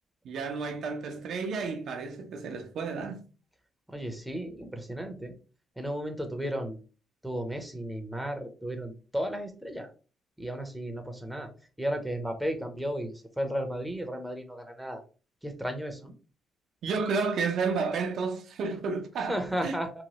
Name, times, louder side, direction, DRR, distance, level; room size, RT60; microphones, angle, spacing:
voice 1, 0.2-3.2 16.8-19.8, right 4 dB, 70° right, 0.5 m, -31 dB
voice 2, 3.9-5.3 5.8-6.8 7.2-9.9 10.4-11.5 11.8-15.0 15.4-16.1 19.3-20.0, equal, ahead, 0.7 m, -34 dB
3.0 x 2.1 x 2.8 m
cardioid pair, 90°, 0 cm